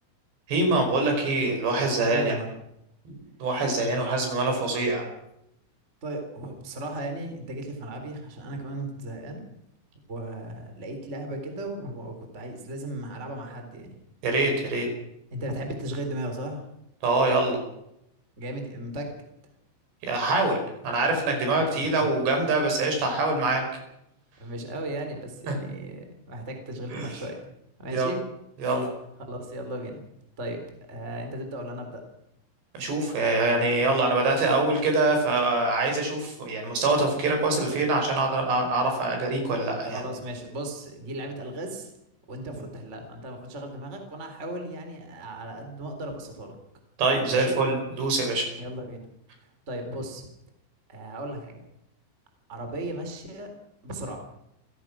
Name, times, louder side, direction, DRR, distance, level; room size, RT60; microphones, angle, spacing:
voice 1, 0.5-2.4 3.1-3.2 3.4-5.0 14.2-14.9 17.0-17.6 20.0-20.6 20.8-23.6 25.5-25.6 26.9-27.1 27.9-28.1 28.6-28.9 32.7-40.0 47.0-48.5, right 2 dB, 60° right, 4 dB, 7.3 m, -24 dB
voice 2, 2.1-2.5 6.0-9.4 10.1-14.0 15.3-16.6 18.4-19.1 21.5-22.0 23.0-23.1 24.4-27.4 27.8-28.2 29.3-30.0 30.4-30.6 30.9-32.0 37.6-37.7 39.9-41.9 42.3-46.6 47.3-47.6 48.6-49.1 49.7-50.3 50.9-51.6 52.5-53.5 53.8-54.2, right 1 dB, 15° right, 5 dB, 3.3 m, -36 dB
28.0 x 17.0 x 6.2 m, 0.81 s
omnidirectional pair, 5.6 m